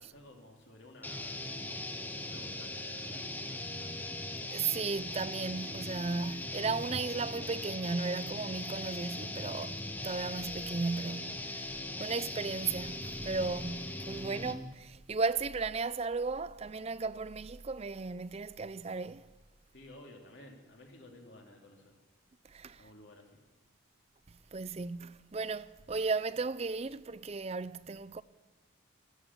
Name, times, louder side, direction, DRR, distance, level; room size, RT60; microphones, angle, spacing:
voice 1, 0.0-1.6 2.2-4.0 19.7-21.9 22.8-23.4, left 1 dB, 55° left, 2.9 m, -54 dB
sound 1, 1.0-14.7, left 2 dB, 10° left, 0.7 m, -40 dB
voice 2, 4.5-19.2 22.5-22.8 24.5-28.2, right 4 dB, 30° right, 0.4 m, -35 dB
14.5 x 13.5 x 7.3 m
head